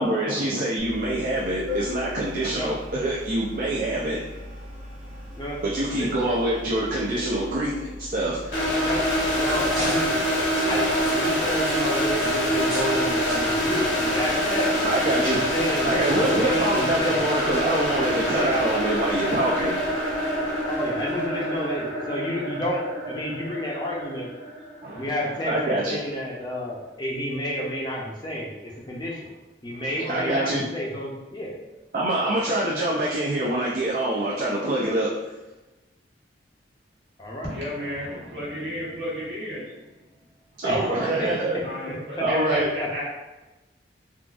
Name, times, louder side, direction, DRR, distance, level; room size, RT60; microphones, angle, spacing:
voice 1, 0.0-4.2 5.6-8.7 14.8-15.4 15.8-20.2 24.8-25.1 25.4-26.0 30.1-30.7 31.9-35.1 40.6-41.6 42.2-42.7, right 1 dB, 50° right, -5 dB, 0.4 m, -25 dB
Organ, 0.8-9.8, left 2 dB, 30° right, 1.1 m, -39 dB
voice 2, 5.4-6.3 8.6-10.1 10.7-14.7 15.2-17.2 18.4-18.7 20.7-24.3 24.9-29.3 29.6-31.6 37.2-37.5 40.6-40.9 41.2-41.3 42.2-42.3 42.8-42.9, equal, 25° left, -3 dB, 0.5 m, -30 dB
sound 1, 8.5-25.4, equal, 75° left, 0.8 m, -25 dB
sound 2, 9.2-13.0 13.3-13.5 14.2-14.3 14.8-14.9, equal, ahead, 0.8 m, -38 dB
voice 3, 37.4-39.8 40.8-41.1 41.6-43.0, equal, 70° right, -7 dB, 1.3 m, -32 dB
3.8 x 2.4 x 2.4 m, 1.1 s
head